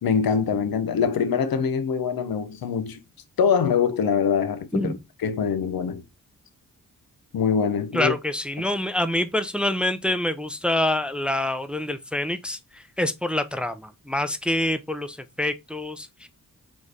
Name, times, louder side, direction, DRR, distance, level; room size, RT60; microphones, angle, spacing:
voice 1, 0.0-3.0 3.4-4.9 5.2-6.0 7.3-8.1, left 6 dB, 85° left, 0.7 m, -23 dB
voice 2, 7.9-16.3, left 1 dB, 5° right, 0.4 m, -26 dB
4.3 x 3.0 x 3.2 m
cardioid pair, 70°, 35 cm